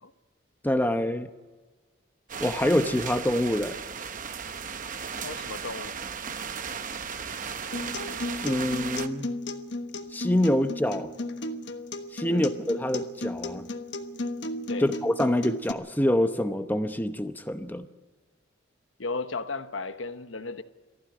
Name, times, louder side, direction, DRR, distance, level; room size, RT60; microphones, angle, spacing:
voice 1, 0.6-1.3 2.4-3.8 8.4-9.4 10.1-11.1 12.1-13.7 14.8-17.9, left 1 dB, 10° left, 9 dB, 0.9 m, -26 dB
sound 1, 2.3-9.1, right 6 dB, 40° right, 0.8 m, -36 dB
voice 2, 5.2-5.9 12.3-12.5 14.7-14.9 19.0-20.6, left 3 dB, 80° left, 10 dB, 1.1 m, -34 dB
Acoustic guitar, 7.7-15.7, left 2 dB, 60° left, 1.3 m, -35 dB
20.0 x 15.0 x 9.4 m, 1.4 s
head